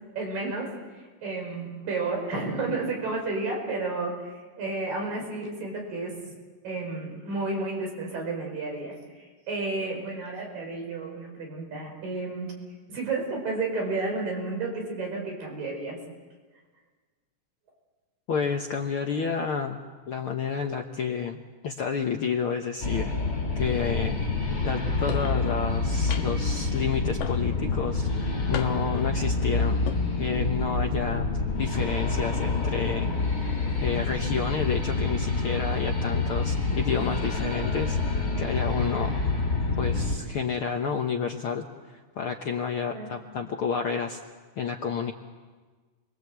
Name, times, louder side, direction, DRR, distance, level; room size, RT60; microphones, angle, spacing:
voice 1, 0.1-6.4 6.6-12.5 12.9-16.0 42.9-43.1, right 3 dB, 85° right, 1 dB, 6.8 m, -32 dB
voice 2, 18.3-23.1 23.5-24.2 24.6-29.8 30.2-31.3 31.6-33.1 33.8-39.1 39.8-41.7 41.9-44.2 44.6-45.1, left 6 dB, 65° left, 3 dB, 1.4 m, -30 dB
sound 1, 22.8-40.2, left 3 dB, 20° left, 5.8 m, -27 dB
sound 2, 25.1-25.4 26.1-26.5 27.2-27.7 28.5-29.0 29.7-30.0, left 9 dB, 85° left, 3.0 m, -36 dB
29.0 x 22.5 x 8.1 m, 1.4 s
omnidirectional pair, 3.8 m